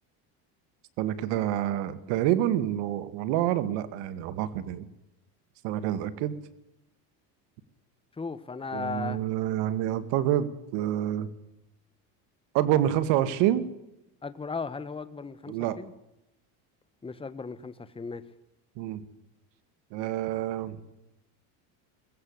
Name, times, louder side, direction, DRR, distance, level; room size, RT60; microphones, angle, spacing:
voice 1, 1.0-4.9 5.6-6.4 8.7-11.3 12.5-13.7 15.5-15.8 18.8-19.0 19.9-20.8, right 12 dB, 70° right, 14 dB, 2.1 m, -27 dB
voice 2, 8.2-9.2 14.2-15.9 17.0-18.2, left 4 dB, 10° left, 13 dB, 1.3 m, -36 dB
21.0 x 16.5 x 8.2 m, 0.87 s
supercardioid pair, 120°, 44 cm